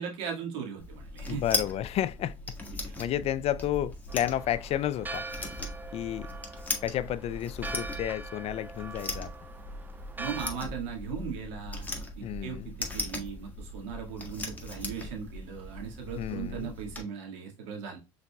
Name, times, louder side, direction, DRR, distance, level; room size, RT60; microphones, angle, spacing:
voice 1, 0.0-1.4 10.2-11.9 12.2-18.0, right 7 dB, 75° right, 1.9 m, -38 dB
sound 1, 0.8-17.0, left 2 dB, 10° left, 1.5 m, -39 dB
voice 2, 1.3-2.3 3.0-5.2 5.9-6.3 6.8-9.3 12.2-12.7 16.1-16.7, left 12 dB, 40° left, 0.4 m, -31 dB
Church bell, 4.1-10.5, right 2 dB, 10° right, 0.5 m, -42 dB
5.7 x 4.0 x 2.3 m
hypercardioid pair, 85°, 15 cm